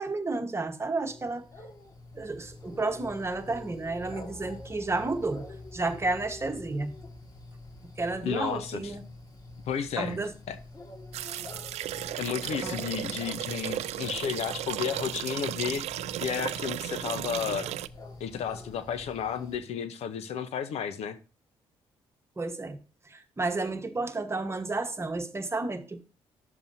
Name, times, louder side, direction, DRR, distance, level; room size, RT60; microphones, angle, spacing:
voice 1, 0.0-1.4 2.1-6.9 8.0-9.0 10.0-10.3 12.6-12.8 22.4-22.8 23.1-26.0, right 3 dB, 25° right, 1.2 m, -31 dB
sound 1, 1.0-19.6, left 2 dB, 35° left, 1.7 m, -46 dB
voice 2, 8.2-8.9 9.7-10.2 10.5-10.6 12.2-15.8 16.2-17.7 18.2-21.2, left 8 dB, 70° left, 0.8 m, -32 dB
sound 2, 11.1-17.9, right 13 dB, 75° right, 0.4 m, -35 dB
11.0 x 7.0 x 2.7 m
supercardioid pair, 65°, 11 cm